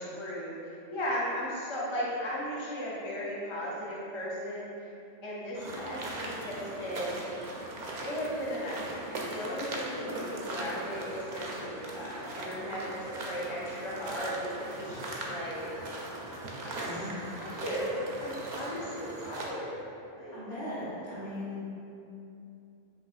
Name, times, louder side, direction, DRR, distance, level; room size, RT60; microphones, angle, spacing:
voice 1, 0.0-4.7 5.2-7.2 8.0-15.7 16.6-17.0 17.4-19.7 20.2-20.4, equal, 40° left, -6 dB, 0.4 m, -36 dB
sound 1, 5.5-19.5, right 2 dB, 55° right, 0.5 m, -39 dB
voice 2, 16.8-17.2 20.3-21.6, left 1 dB, 55° left, -11 dB, 1.7 m, -38 dB
5.6 x 2.7 x 2.4 m, 2.7 s
omnidirectional pair, 1.2 m